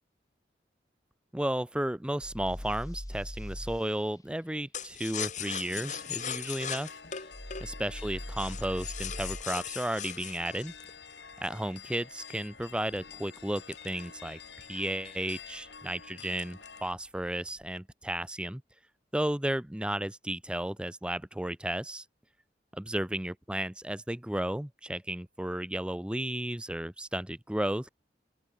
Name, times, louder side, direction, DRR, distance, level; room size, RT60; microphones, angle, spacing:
voice 1, 1.3-6.9 7.6-10.7 11.4-18.6 19.1-22.0 22.7-27.9, right 1 dB, 5° right, 0.5 m, -33 dB
sound 1, 2.2-3.8 7.3-9.4, equal, 20° left, 2.6 m, -40 dB
sound 2, 4.7-11.7 12.2-14.6 15.0-15.1 15.4-15.8 16.2-16.9 17.2-17.8, left 9 dB, 45° left, 1.7 m, -39 dB
sound 3, 5.4-16.9, left 6 dB, 70° left, 4.8 m, -49 dB
open air
head